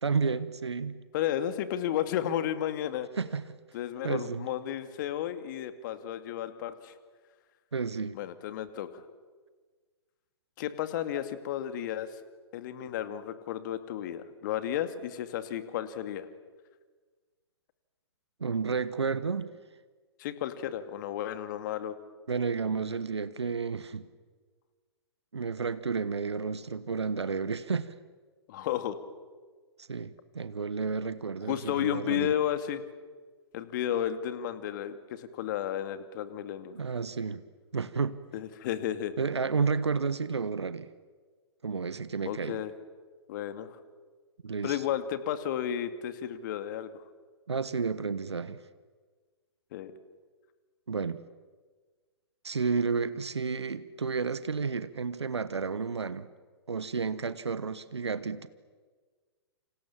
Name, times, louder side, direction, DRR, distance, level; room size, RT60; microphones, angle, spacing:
voice 1, 0.0-1.0 3.2-3.4 4.0-4.5 7.7-8.2 18.4-19.5 22.3-24.0 25.3-27.9 29.8-32.3 36.7-37.4 37.7-38.2 39.2-40.9 41.6-42.6 44.4-44.8 47.5-48.6 50.9-51.2 52.4-56.3 56.7-58.5, right 5 dB, 80° right, 1.2 m, -31 dB
voice 2, 1.1-3.1 3.7-6.9 8.1-9.0 10.6-12.1 12.5-16.3 20.2-22.0 28.5-29.0 31.5-32.8 33.5-36.7 38.3-39.2 42.2-42.7 43.3-43.8 44.6-46.9 49.7-49.9, left 11 dB, 45° left, 2.3 m, -33 dB
29.5 x 27.0 x 7.4 m
figure-of-eight pair, 115°, 14 cm